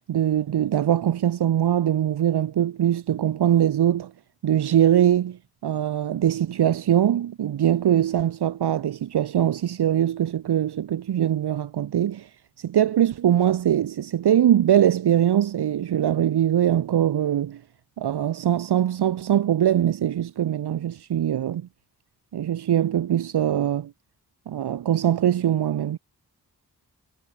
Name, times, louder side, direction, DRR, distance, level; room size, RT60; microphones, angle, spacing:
voice 1, 0.1-4.1 4.4-12.3 12.6-17.6 18.0-21.7 22.3-23.9 24.5-26.0, right 10 dB, 75° right, 0.6 m, -22 dB
wide cardioid pair, 70°, 40 cm